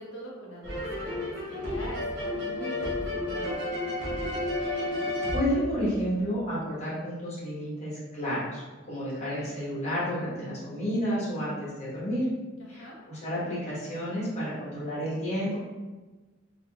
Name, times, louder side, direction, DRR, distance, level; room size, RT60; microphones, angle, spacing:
voice 1, 0.0-3.6 12.6-13.0, right 1 dB, 65° left, -2 dB, 0.7 m, -42 dB
sound 1, 0.6-6.4, left 1 dB, 60° right, 0.9 m, -32 dB
voice 2, 4.5-5.0 5.3-8.6 8.9-12.3 12.7-15.6, equal, 35° left, -9 dB, 1.2 m, -31 dB
3.4 x 2.3 x 2.3 m, 1.3 s
head